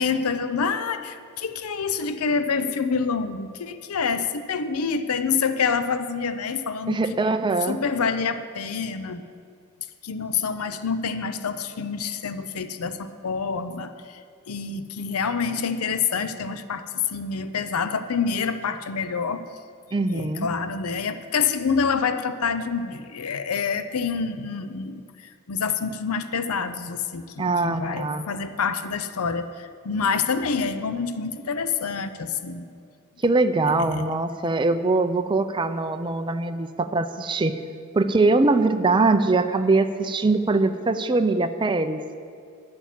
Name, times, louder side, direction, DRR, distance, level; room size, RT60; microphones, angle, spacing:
voice 1, 0.0-7.0 7.7-9.2 10.0-14.2 14.5-19.4 20.1-32.7 33.7-34.0, left 5 dB, 85° left, 11 dB, 0.6 m, -27 dB
voice 2, 6.9-7.8 19.9-20.5 27.4-28.3 33.2-37.6 37.9-42.0, right 3 dB, 20° right, 8 dB, 0.4 m, -22 dB
10.5 x 8.3 x 7.4 m, 2.3 s
head